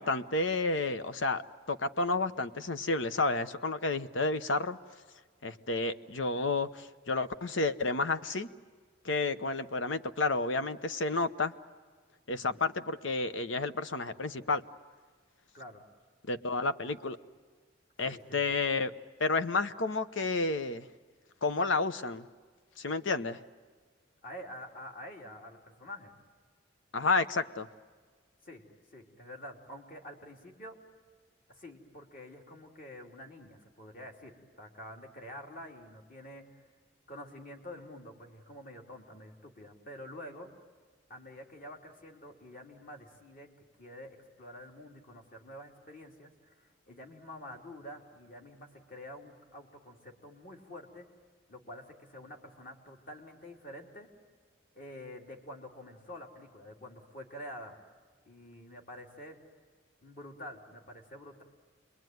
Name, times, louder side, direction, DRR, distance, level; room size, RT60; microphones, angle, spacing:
voice 1, 0.0-1.4 1.7-4.8 5.4-8.5 9.0-11.5 12.3-14.6 16.3-17.2 18.0-18.9 19.2-20.9 21.4-22.2 22.8-23.4 26.9-27.7, left 3 dB, 75° left, 12 dB, 1.0 m, -31 dB
voice 2, 18.1-18.4 24.2-26.1 28.4-28.6 28.9-30.8 31.5-36.6 37.1-40.5 41.1-43.5 43.8-51.1 51.5-54.1 54.7-57.8 58.2-59.4 60.0-61.4, left 1 dB, 45° left, 1 dB, 3.3 m, -48 dB
28.5 x 22.0 x 9.4 m, 1.5 s
head